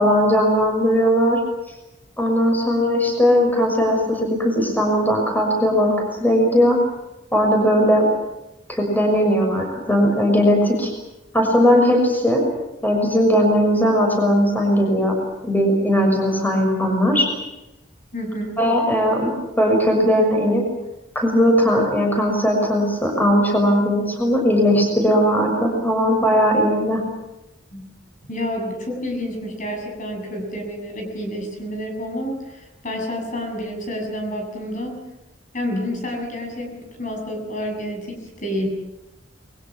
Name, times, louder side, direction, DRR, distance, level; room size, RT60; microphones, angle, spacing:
voice 1, 0.0-1.4 2.2-6.8 7.3-8.0 8.7-10.9 11.3-12.4 12.8-15.1 15.4-17.3 18.6-19.3 19.6-20.6 21.1-27.0, equal, 10° left, 2 dB, 6.4 m, -18 dB
voice 2, 9.1-9.5 18.1-18.6 27.7-27.9 28.3-35.0 35.5-38.7, equal, 45° left, 3 dB, 7.3 m, -29 dB
29.5 x 22.0 x 7.3 m, 0.95 s
head